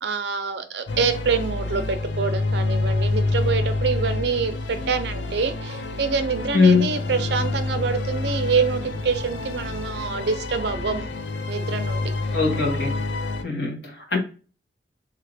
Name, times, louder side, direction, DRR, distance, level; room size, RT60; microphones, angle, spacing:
voice 1, 0.0-11.1 11.5-12.1, right 5 dB, 65° right, 0.5 m, -26 dB
sound 1, 0.9-13.4, left 2 dB, 80° left, 0.5 m, -27 dB
voice 2, 6.5-6.9 12.3-13.0 13.4-14.2, left 4 dB, 65° left, 1.1 m, -20 dB
3.3 x 2.4 x 3.2 m
head